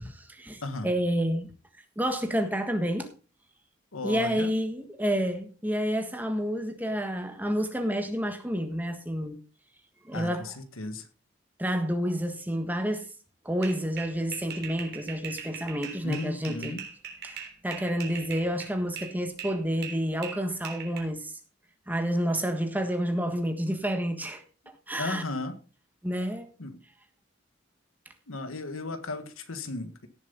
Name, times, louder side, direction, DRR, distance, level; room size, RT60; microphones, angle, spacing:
voice 1, 0.0-1.5 2.0-3.1 4.0-9.4 10.1-10.5 11.6-13.1 13.4-16.8 17.2-21.3 21.9-24.4 24.9-25.2 26.0-26.5, equal, 10° right, 1.5 m, -29 dB
voice 2, 3.9-4.5 10.1-11.0 15.9-16.8 25.0-25.6 26.6-26.8 28.3-30.1, left 2 dB, 85° left, 1.6 m, -35 dB
sound 1, 13.6-19.1 19.4-21.0, right 7 dB, 50° right, 3.5 m, -40 dB
17.0 x 7.4 x 4.0 m
head